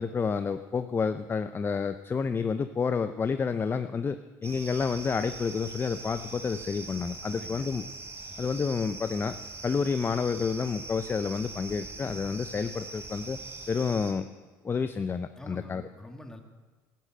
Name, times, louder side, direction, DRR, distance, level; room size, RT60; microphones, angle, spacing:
voice 1, 0.0-7.8 8.4-9.4 9.6-13.4 13.7-14.3 14.6-15.8, left 5 dB, 25° left, 11 dB, 0.6 m, -29 dB
sound 1, 4.4-14.1, right 3 dB, 30° right, 3.2 m, -42 dB
voice 2, 7.3-7.7 8.2-8.4 15.4-16.4, left 1 dB, 5° left, 4 dB, 2.0 m, -46 dB
15.0 x 9.9 x 7.8 m, 1.3 s
supercardioid pair, 85°, 9 cm